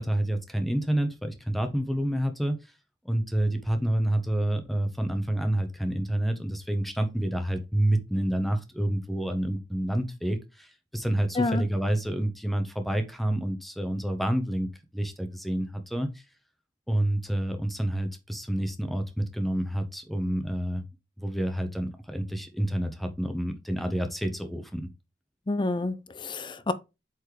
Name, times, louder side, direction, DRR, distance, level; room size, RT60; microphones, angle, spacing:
voice 1, 0.0-2.6 3.0-14.7 14.9-16.1 16.9-20.8 21.2-24.9, right 1 dB, ahead, 1.1 m, -28 dB
voice 2, 25.5-26.7, left 2 dB, 25° left, 0.5 m, -28 dB
8.1 x 4.4 x 3.4 m
head